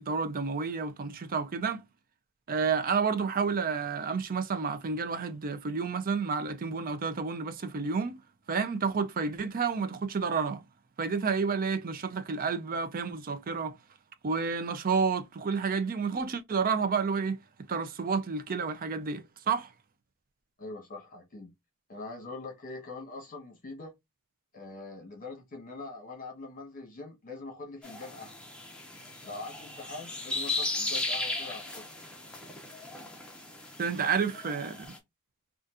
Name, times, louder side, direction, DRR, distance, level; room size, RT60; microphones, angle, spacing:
voice 1, 0.0-1.8 2.5-8.2 8.5-10.6 11.0-13.8 14.2-17.4 17.7-19.7 33.8-34.9, right 5 dB, 40° right, 0.5 m, -30 dB
voice 2, 20.6-21.5 21.9-23.9 24.5-28.3 29.2-31.8 34.2-34.4, left 3 dB, 40° left, 1.1 m, -43 dB
sound 1, 27.8-35.0, left 2 dB, 5° left, 0.8 m, -36 dB
3.9 x 2.5 x 2.4 m
head